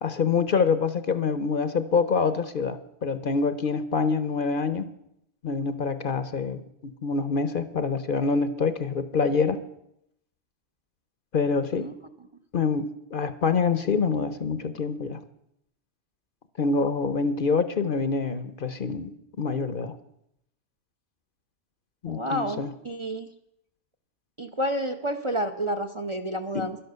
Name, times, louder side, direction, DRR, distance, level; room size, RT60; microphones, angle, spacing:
voice 1, 0.0-4.9 5.4-9.6 11.3-11.9 12.5-15.2 16.6-19.1 19.4-19.9 22.0-22.7 26.5-26.7, left 5 dB, 50° left, 12 dB, 0.9 m, -26 dB
voice 2, 22.1-23.3 24.4-26.8, equal, 30° right, 5 dB, 0.6 m, -30 dB
11.5 x 11.5 x 6.7 m, 0.79 s
omnidirectional pair, 1.2 m